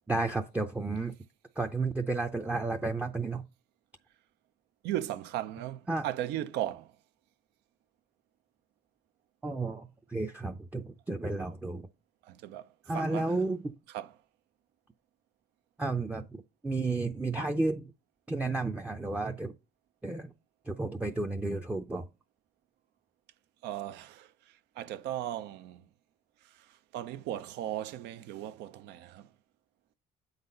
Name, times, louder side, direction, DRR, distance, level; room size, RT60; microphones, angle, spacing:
voice 1, 0.1-1.1 1.6-3.4 5.9-6.1 9.4-11.9 12.9-13.7 15.8-17.9 18.3-19.5 20.0-20.3 20.7-22.1, right 3 dB, 10° right, 0.5 m, -32 dB
voice 2, 4.8-6.9 12.3-12.7 12.9-13.4 13.9-14.1 23.6-24.3 24.8-25.8 26.6-26.7 26.9-29.3, right 12 dB, 85° right, 0.6 m, -36 dB
7.8 x 4.0 x 5.4 m
cardioid pair, 110°, 17 cm